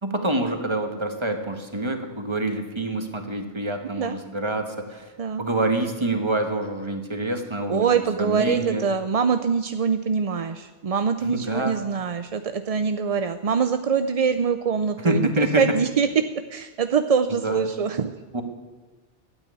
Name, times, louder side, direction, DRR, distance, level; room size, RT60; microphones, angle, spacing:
voice 1, 0.0-5.1 5.4-8.8 11.2-11.8 15.0-15.6 17.4-17.6 18.3-18.4, right 2 dB, 25° right, 5 dB, 1.5 m, -26 dB
voice 2, 7.7-16.3 16.5-18.1, right 6 dB, 45° right, 9 dB, 0.5 m, -24 dB
12.5 x 9.0 x 9.7 m, 1.2 s
omnidirectional pair, 1.2 m